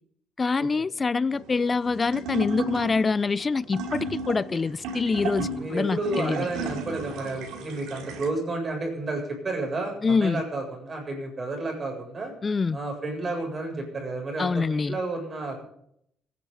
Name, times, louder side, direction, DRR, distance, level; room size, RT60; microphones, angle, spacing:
voice 1, 0.4-6.5 10.0-10.4 12.4-12.8 14.4-15.0, left 4 dB, 30° left, 0.5 m, -25 dB
sound 1, 1.3-8.3, right 3 dB, 85° right, 2.9 m, -35 dB
voice 2, 5.5-12.3 12.7-15.6, right 2 dB, 35° right, 7.6 m, -31 dB
26.0 x 10.5 x 4.1 m
cardioid pair, 100°, 0 cm